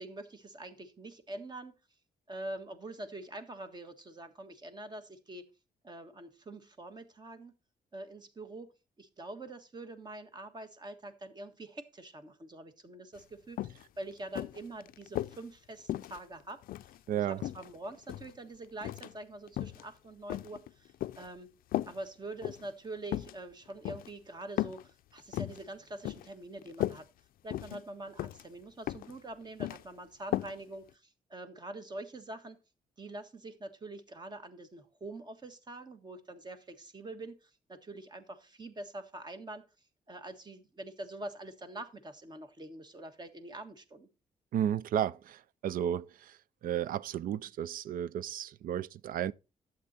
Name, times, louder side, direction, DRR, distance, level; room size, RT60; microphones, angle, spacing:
voice 1, 0.0-1.7 2.3-5.5 5.8-7.5 7.9-8.7 9.0-16.9 17.2-21.5 21.9-27.1 27.4-32.6 33.0-39.6 40.1-44.1, right 2 dB, 30° right, 1.6 m, -45 dB
sound 1, 13.2-13.3 13.6-13.8 14.4-15.4 15.9-17.0 17.4-18.3 18.8-19.1 19.5-19.8 20.3-21.3 21.7-22.0 22.4-22.7 23.1-23.3 23.8-24.1 24.6-24.8 25.2-25.6 26.0-26.3 26.6-27.0 27.5-27.8 28.2-28.4 28.9-29.2 29.4-29.8 30.3-30.5 30.9-31.0, left 14 dB, 85° left, 0.4 m, -36 dB
voice 2, 17.1-17.4 44.5-45.4 45.6-46.1 46.6-49.3, right 10 dB, 75° right, 0.5 m, -32 dB
11.5 x 7.8 x 4.2 m
cardioid pair, 115°, 15 cm